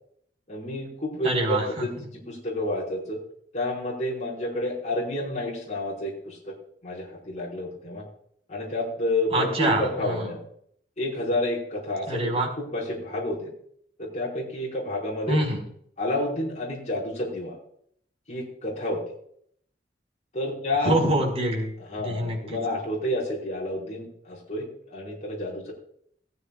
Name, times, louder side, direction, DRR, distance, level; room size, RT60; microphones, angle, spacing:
voice 1, 0.5-3.2 3.5-6.5 6.8-8.0 8.5-10.4 11.0-12.3 12.6-13.5 14.0-15.4 16.0-17.6 18.3-19.0 20.3-20.9 21.8-25.7, left 1 dB, 40° left, -4 dB, 4.8 m, -30 dB
voice 2, 1.2-1.9 9.3-10.3 12.1-12.5 15.3-15.6 20.8-21.7 22.0-22.6, right 1 dB, 35° right, -1 dB, 4.5 m, -25 dB
17.5 x 14.5 x 2.4 m, 0.65 s
head